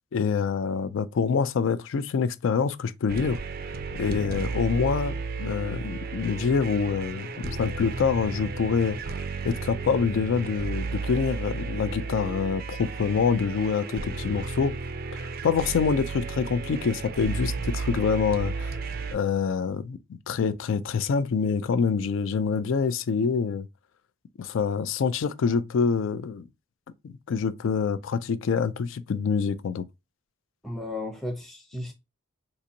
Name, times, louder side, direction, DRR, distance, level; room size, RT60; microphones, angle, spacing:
voice 1, 0.1-3.4 4.0-9.0 9.4-14.7 15.1-18.8 19.1-20.0 20.3-23.7 24.4-26.5 27.0-29.9, left 5 dB, 65° left, 0.3 m, -26 dB
sound 1, 3.1-19.2, right 4 dB, 45° right, 0.4 m, -33 dB
voice 2, 30.6-31.9, left 1 dB, ahead, 0.6 m, -34 dB
3.9 x 2.5 x 2.7 m
head